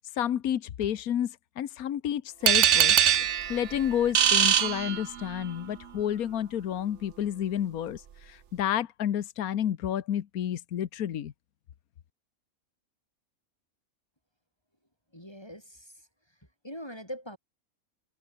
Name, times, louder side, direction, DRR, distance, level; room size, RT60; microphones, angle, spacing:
voice 1, 0.1-2.9 3.5-11.3, left 10 dB, 80° left, 1.4 m, -30 dB
sound 1, 2.5-5.5, right 9 dB, 55° right, 1.2 m, -23 dB
voice 2, 15.1-15.9 16.6-17.4, equal, 15° left, 7.6 m, -41 dB
omnidirectional pair, 1.5 m